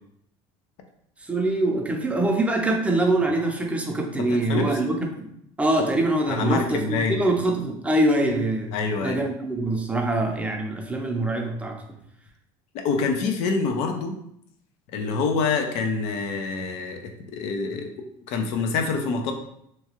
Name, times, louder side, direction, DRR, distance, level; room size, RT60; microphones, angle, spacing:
voice 1, 1.2-5.3 5.6-8.7 9.0-11.8, right 1 dB, 10° right, 2 dB, 0.6 m, -24 dB
voice 2, 4.3-4.8 6.3-7.2 8.7-9.2 12.7-14.1 14.9-17.0 17.3-17.9 18.3-19.3, left 4 dB, 65° left, 4 dB, 0.6 m, -26 dB
2.9 x 2.3 x 2.9 m, 0.74 s
supercardioid pair, 100°, 12 cm